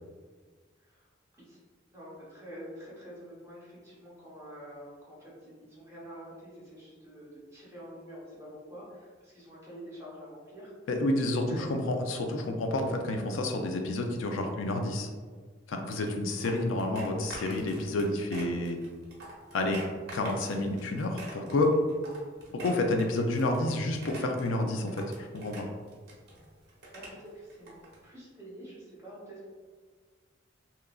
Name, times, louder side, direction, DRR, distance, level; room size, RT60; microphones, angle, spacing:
voice 1, 1.9-10.7 11.5-11.9 26.9-27.7 28.0-29.5, equal, 15° right, -7 dB, 0.9 m, -47 dB
voice 2, 10.9-15.1 15.7-18.8 19.5-19.8 20.1-21.8 22.5-25.7, left 2 dB, 85° left, 4 dB, 0.4 m, -29 dB
sound 1, 15.9-28.0, right 2 dB, 60° right, 0.7 m, -46 dB
2.8 x 2.4 x 2.3 m, 1.5 s
head